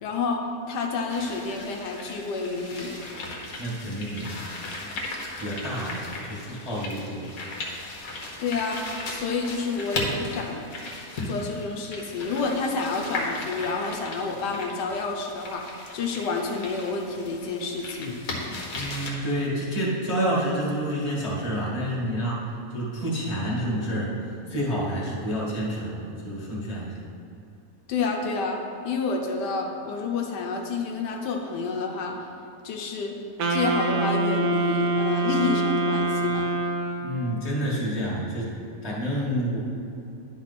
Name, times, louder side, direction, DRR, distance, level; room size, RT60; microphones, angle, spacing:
voice 1, 0.0-3.0 8.4-10.6 11.2-18.2 27.9-28.6 28.8-32.2 32.6-33.2 33.5-36.5, left 4 dB, 85° left, 2 dB, 1.3 m, -29 dB
sound 1, 1.1-19.1, left 2 dB, 60° left, 1.4 m, -36 dB
voice 2, 3.6-4.3 5.4-6.0 6.3-7.3 18.8-22.4 22.7-24.1 24.5-26.9 37.0-38.5 38.8-39.6, equal, 25° left, -5 dB, 1.5 m, -28 dB
Wind instrument woodwind instrument, 33.4-37.3, right 1 dB, 85° right, 1.4 m, -25 dB
10.5 x 4.4 x 4.1 m, 2.8 s
omnidirectional pair, 1.8 m